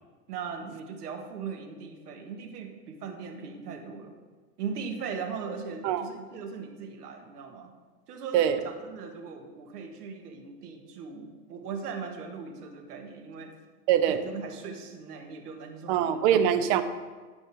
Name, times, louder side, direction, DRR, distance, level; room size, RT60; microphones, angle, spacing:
voice 1, 0.3-4.1 4.6-7.7 8.1-13.5 14.1-16.2, right 5 dB, 80° right, 4 dB, 1.7 m, -39 dB
voice 2, 13.9-14.3 15.9-16.8, right 9 dB, 45° right, 10 dB, 0.9 m, -23 dB
13.5 x 5.4 x 4.7 m, 1.4 s
hypercardioid pair, 115°, 47 cm